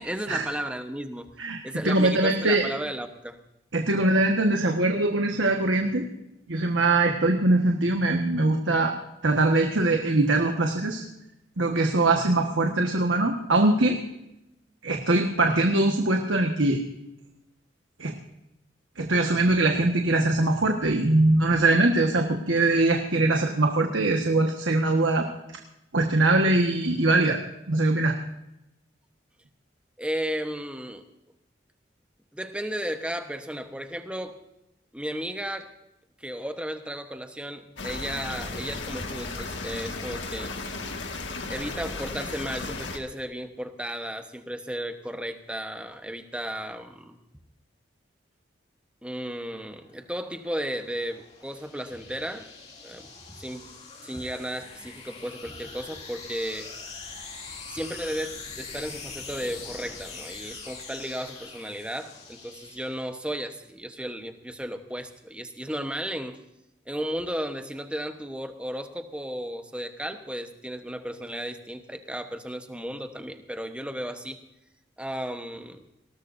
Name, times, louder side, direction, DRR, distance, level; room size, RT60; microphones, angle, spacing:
voice 1, 0.0-1.3 1.6-3.4 30.0-31.0 32.3-34.4 34.9-35.7 36.2-40.5 41.5-47.2 49.0-52.5 52.8-53.1 53.3-53.7 54.0-56.7 57.7-66.4 66.9-74.4 75.0-75.8, equal, 5° right, 7 dB, 1.0 m, -34 dB
voice 2, 1.4-2.6 3.7-6.1 6.5-8.9 9.2-11.0 11.6-14.0 14.8-16.8 18.0-18.1 19.0-25.3 25.9-27.4 27.7-28.1, right 2 dB, 85° right, 3 dB, 1.5 m, -22 dB
sound 1, 37.8-43.0, left 3 dB, 75° left, 1.8 m, -35 dB
sound 2, 49.8-63.3, left 4 dB, 35° left, 2.6 m, -43 dB
20.0 x 17.5 x 2.7 m, 0.87 s
head